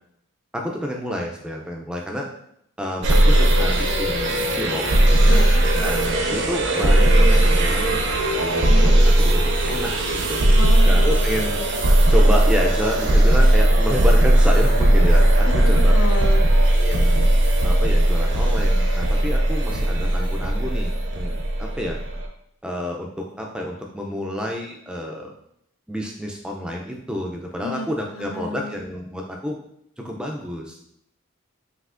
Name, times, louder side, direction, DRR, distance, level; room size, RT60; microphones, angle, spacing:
voice 1, 0.5-2.3 2.8-4.9 5.2-5.4 5.8-8.0 8.3-10.4 10.8-11.6 12.1-16.0 16.7-17.3 17.6-22.0 22.6-25.3 25.9-29.6 30.0-30.8, equal, 5° right, 0 dB, 0.3 m, -29 dB
sound 1, 3.0-22.3, right 1 dB, 55° right, 0.5 m, -17 dB
voice 2, 5.3-5.6 10.5-11.2 15.6-16.4 27.6-27.9 28.2-28.7, left 2 dB, 65° left, 7 dB, 0.4 m, -30 dB
5.5 x 2.8 x 2.4 m, 0.74 s
head